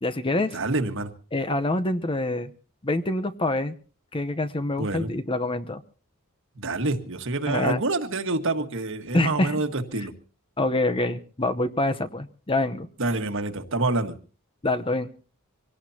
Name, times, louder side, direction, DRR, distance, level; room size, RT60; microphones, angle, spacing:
voice 1, 0.0-0.6 1.3-2.5 2.8-3.7 4.1-5.8 7.5-7.8 9.1-9.5 10.6-12.9 14.6-15.1, left 2 dB, 25° left, 10 dB, 0.8 m, -26 dB
voice 2, 0.5-1.1 4.8-5.1 6.6-10.1 13.0-14.2, right 2 dB, 60° right, 7 dB, 1.5 m, -27 dB
25.0 x 17.5 x 2.8 m, 0.37 s
head